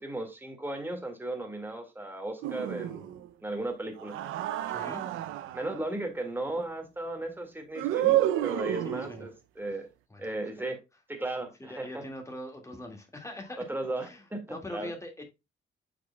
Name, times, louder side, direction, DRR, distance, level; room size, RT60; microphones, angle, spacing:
voice 1, 0.0-4.2 5.5-9.9 10.2-10.8 11.1-12.0 13.7-14.9, right 2 dB, 10° right, 2.0 m, -36 dB
sound 1, 2.4-3.3 4.0-5.8 7.7-9.3, right 13 dB, 90° right, 0.5 m, -30 dB
voice 2, 4.7-5.1 8.9-9.3 10.1-10.3 11.6-13.6 14.0-14.2 14.5-15.2, left 1 dB, 15° left, 2.0 m, -42 dB
8.5 x 5.0 x 2.3 m
cardioid pair, 90°, 20 cm